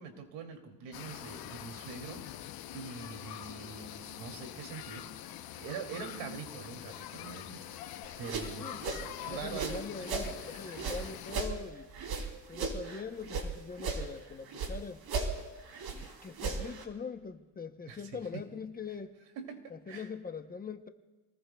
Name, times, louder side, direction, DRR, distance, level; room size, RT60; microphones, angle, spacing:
voice 1, 0.0-2.3 2.7-5.1 5.6-7.6 8.2-9.8 10.4-10.9 17.9-18.4 19.4-20.1, right 5 dB, 90° right, 4 dB, 2.8 m, -44 dB
sound 1, 0.9-11.5, left 12 dB, 55° left, 0.8 m, -45 dB
sound 2, 8.0-10.3 10.7-13.5 13.8-14.8 15.0-16.8, right 4 dB, 60° right, 3.1 m, -36 dB
voice 2, 9.2-11.9 12.5-15.0 15.9-19.1 19.7-20.9, left 5 dB, 20° left, 7 dB, 0.8 m, -42 dB
29.0 x 19.5 x 2.3 m, 1.3 s
cardioid pair, 130°, 42 cm